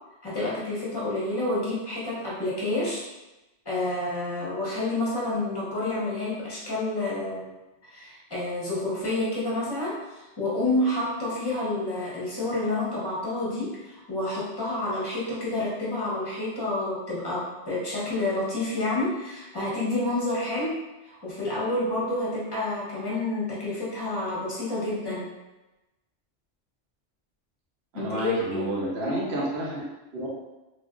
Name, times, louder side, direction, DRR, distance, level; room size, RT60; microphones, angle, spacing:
voice 1, 0.2-3.0 3.6-7.5 7.8-25.3 27.9-28.7, left 2 dB, 25° left, -7 dB, 0.9 m, -29 dB
voice 2, 27.9-29.8 30.1-30.3, right 1 dB, 65° right, -5 dB, 0.9 m, -30 dB
3.4 x 2.4 x 2.4 m, 1.0 s
omnidirectional pair, 1.2 m